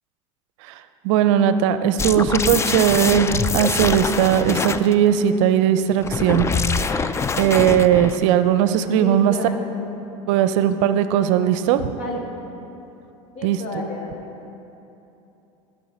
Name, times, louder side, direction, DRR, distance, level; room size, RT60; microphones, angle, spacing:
voice 1, 1.0-6.5 6.8-7.1 7.4-9.3 10.3-11.9 13.4-13.6, right 10 dB, 65° right, 12 dB, 0.5 m, -18 dB
sound 1, 2.0-4.9 6.0-8.2, left 5 dB, 15° left, 0.3 m, -24 dB
voice 2, 2.4-3.3 8.9-9.9 12.0-12.3 13.3-14.3, left 1 dB, 55° left, 0 dB, 2.0 m, -32 dB
16.0 x 5.4 x 4.2 m, 2.9 s
hypercardioid pair, 85°, 17 cm